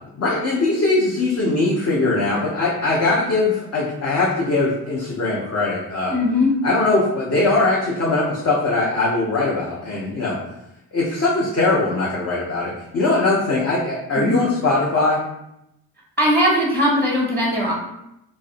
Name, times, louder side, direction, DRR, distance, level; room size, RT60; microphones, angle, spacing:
voice 1, 0.0-6.1 6.6-10.4 10.9-15.2, left 2 dB, 35° left, -5 dB, 0.6 m, -21 dB
voice 2, 6.1-6.5 14.2-14.4 16.2-17.7, left 1 dB, 5° left, -4 dB, 0.8 m, -19 dB
2.5 x 2.0 x 2.4 m, 0.84 s
supercardioid pair, 55°, 42 cm